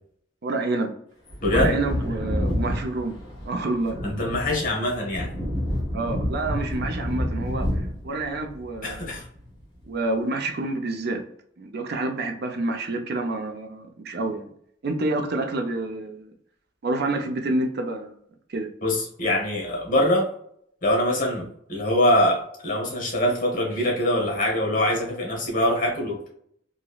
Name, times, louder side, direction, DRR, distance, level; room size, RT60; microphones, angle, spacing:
voice 1, 0.4-0.9 1.5-3.2 3.4-4.0 5.9-9.2 9.9-11.2 11.6-14.5 14.8-16.3 16.8-18.2 18.5-18.7, right 2 dB, 60° right, 4 dB, 0.5 m, -28 dB
Wind / Thunder, 1.3-9.5 9.8-9.9, equal, 25° left, 1.1 m, -29 dB
voice 2, 1.4-1.8 4.0-5.3 8.8-9.2 18.8-20.3 20.8-26.3, left 1 dB, 45° left, 1 dB, 1.1 m, -23 dB
2.9 x 2.6 x 2.3 m, 0.67 s
head